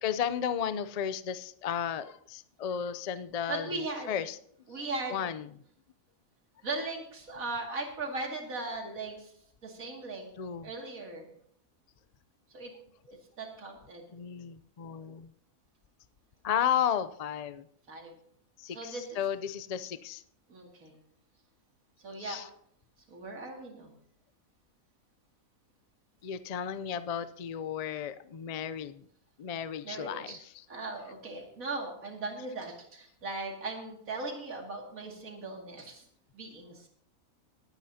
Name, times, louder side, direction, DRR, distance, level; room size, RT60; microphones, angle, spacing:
voice 1, 0.0-4.4 5.1-5.5 10.4-10.7 14.1-15.3 16.4-17.7 18.6-20.2 22.2-22.5 26.2-29.1 29.4-30.4, left 9 dB, 70° left, 13 dB, 0.3 m, -33 dB
voice 2, 3.5-4.2 4.7-5.2 6.6-9.3 9.6-10.3 10.6-11.3 12.5-12.7 13.0-14.1 17.9-18.2 18.7-19.2 20.5-21.0 22.0-22.4 23.1-23.9 29.8-30.4 30.7-36.1 36.3-36.9, right 3 dB, 75° right, 1 dB, 2.8 m, -38 dB
21.0 x 9.0 x 2.8 m, 0.65 s
omnidirectional pair, 1.5 m